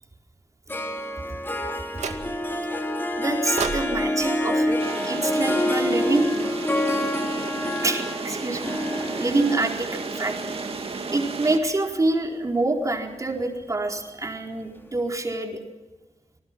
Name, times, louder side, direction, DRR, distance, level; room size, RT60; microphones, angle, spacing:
Harp, 0.7-12.1, left 1 dB, 20° left, 3.1 m, -28 dB
sound 1, 2.0-2.6 3.6-5.8, right 5 dB, 75° right, 2.3 m, -35 dB
voice 1, 3.2-6.3 7.8-10.4 11.1-15.6, right 2 dB, 30° right, 1 dB, 4.4 m, -26 dB
sound 2, 4.8-11.6, right 4 dB, 55° right, 2.7 m, -33 dB
28.0 x 19.5 x 6.1 m, 1.2 s
wide cardioid pair, 125°, 12 cm